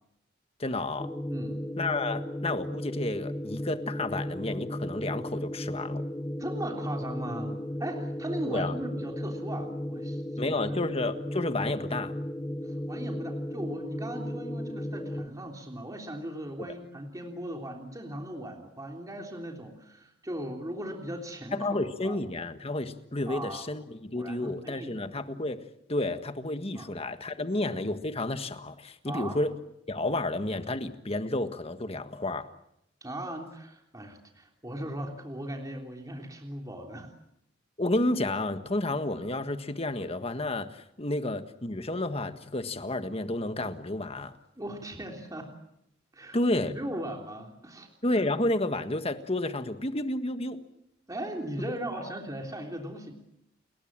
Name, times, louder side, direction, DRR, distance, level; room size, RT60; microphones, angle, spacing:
voice 1, 0.6-1.1 1.8-6.1 8.5-8.8 10.4-12.1 21.5-25.6 25.9-29.5 29.9-32.5 37.8-44.3 46.3-46.8 48.0-50.6, left 2 dB, 30° left, 9 dB, 1.6 m, -31 dB
sound 1, 1.0-15.3, left 1 dB, 10° left, 1.1 m, -35 dB
voice 2, 1.3-1.6 6.4-10.5 10.9-11.0 12.6-22.2 23.3-23.7 24.2-24.9 26.7-26.9 27.4-27.5 29.0-29.4 33.0-37.1 44.6-45.5 46.1-46.4 46.7-47.9 51.1-53.1, right 1 dB, 20° right, 2 dB, 3.4 m, -38 dB
30.0 x 21.5 x 7.5 m, 0.79 s
head